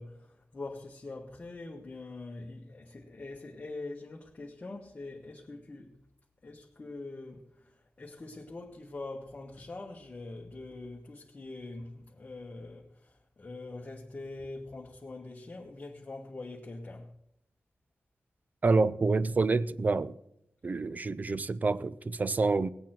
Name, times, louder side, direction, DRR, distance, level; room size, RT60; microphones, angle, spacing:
voice 1, 0.0-6.0 6.4-17.1, left 2 dB, 35° left, 1.4 m, -44 dB
voice 2, 18.6-20.2 20.6-22.7, right 3 dB, 40° right, 0.5 m, -27 dB
19.0 x 8.5 x 4.5 m
wide cardioid pair, 125°, 4 cm